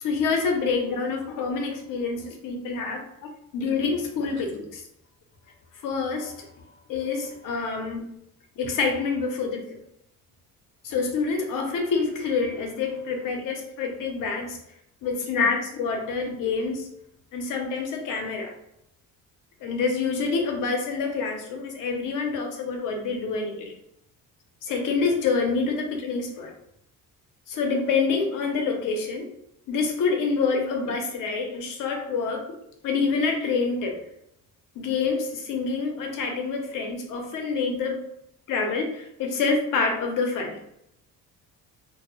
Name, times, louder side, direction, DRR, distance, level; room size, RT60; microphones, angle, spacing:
voice 1, 0.0-4.8 5.8-6.5 6.9-8.0 8.6-9.8 10.8-14.6 15.0-16.9 17.3-18.5 19.6-23.7 24.6-26.5 27.5-29.3 29.7-32.4 32.8-34.0 34.8-38.0 38.5-40.6, left 4 dB, 65° left, 3 dB, 0.6 m, -27 dB
2.1 x 2.0 x 2.9 m, 0.78 s
cardioid pair, 140°, 35 cm